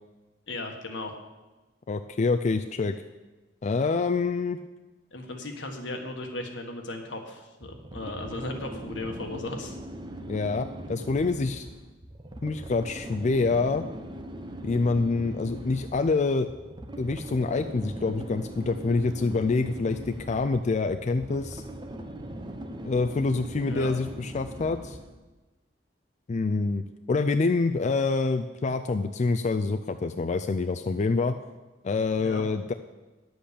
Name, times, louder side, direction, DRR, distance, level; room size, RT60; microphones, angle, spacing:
voice 1, 0.5-1.1 5.1-9.8 23.7-23.9 32.2-32.4, left 2 dB, 80° left, 3 dB, 1.5 m, -36 dB
voice 2, 1.9-3.0 3.6-4.6 10.3-11.7 12.4-13.9 14.6-16.5 17.0-21.6 22.8-25.0 26.3-31.4 31.8-32.7, left 3 dB, 40° left, 8 dB, 0.4 m, -26 dB
sound 1, 7.6-25.2, right 1 dB, 25° right, 0.9 m, -40 dB
10.0 x 7.9 x 6.8 m, 1.2 s
head